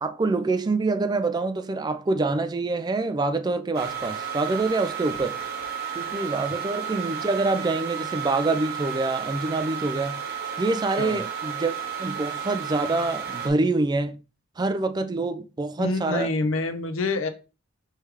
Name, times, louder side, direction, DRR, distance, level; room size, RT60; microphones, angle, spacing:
voice 1, 0.0-5.4 6.0-10.2 10.6-11.7 12.0-14.2 14.6-16.3, right 3 dB, 20° right, 0.3 m, -26 dB
sound 1, 3.7-13.5, right 7 dB, 50° right, 1.1 m, -32 dB
voice 2, 15.8-17.3, left 3 dB, 75° left, 0.7 m, -26 dB
4.8 x 3.3 x 3.3 m
head